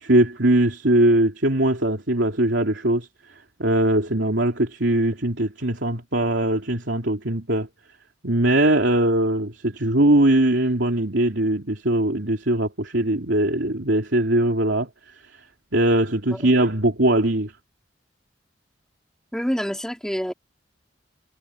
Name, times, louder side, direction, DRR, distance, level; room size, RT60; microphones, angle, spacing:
voice 1, 0.0-3.1 3.6-7.7 8.2-14.9 15.7-17.5, right 1 dB, 75° right, 3.0 m, -21 dB
voice 2, 19.3-20.3, equal, 5° left, 3.6 m, -27 dB
head